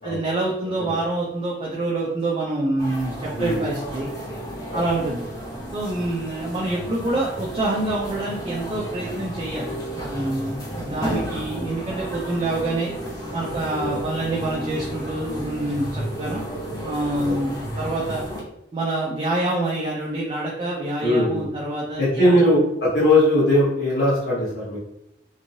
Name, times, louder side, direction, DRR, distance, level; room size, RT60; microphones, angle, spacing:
voice 1, 0.0-4.1 4.7-5.3 5.7-12.9 13.3-16.4 16.8-18.2 18.7-22.5, right 2 dB, 30° right, -3 dB, 0.5 m, -26 dB
sound 1, 2.8-18.4, equal, 20° left, 0.8 m, -33 dB
voice 2, 21.0-21.5 22.0-24.8, left 1 dB, 70° left, -9 dB, 1.0 m, -19 dB
3.0 x 2.6 x 2.7 m, 0.83 s
head